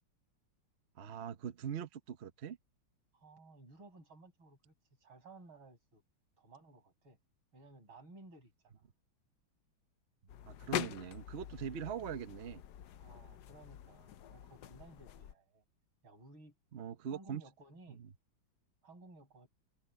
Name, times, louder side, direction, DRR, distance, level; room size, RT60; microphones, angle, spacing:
voice 1, 1.0-2.6 10.5-12.6 16.7-17.4, right 8 dB, 45° right, 0.8 m, -42 dB
voice 2, 3.1-4.7 5.0-6.0 6.4-7.2 7.5-8.8 13.0-15.6 16.0-16.6 17.1-18.0 18.8-19.5, right 2 dB, 80° right, 7.3 m, -57 dB
sound 1, 10.3-15.3, left 11 dB, 65° left, 1.2 m, -44 dB
omnidirectional pair, 2.2 m